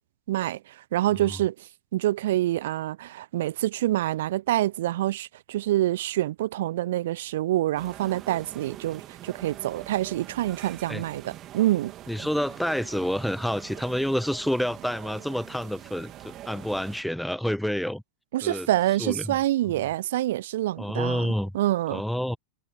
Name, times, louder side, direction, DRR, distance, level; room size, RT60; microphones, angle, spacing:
voice 1, 0.3-11.9 18.3-21.3 21.5-22.0, right 14 dB, 55° right, 0.9 m, -26 dB
sound 1, 7.8-17.0, right 13 dB, 30° right, 3.3 m, -44 dB
voice 2, 12.1-18.0 18.4-18.7 19.0-19.4 19.8-19.9 20.8-21.5 21.9-22.4, equal, ahead, 0.8 m, -28 dB
figure-of-eight pair, 90°, 0 cm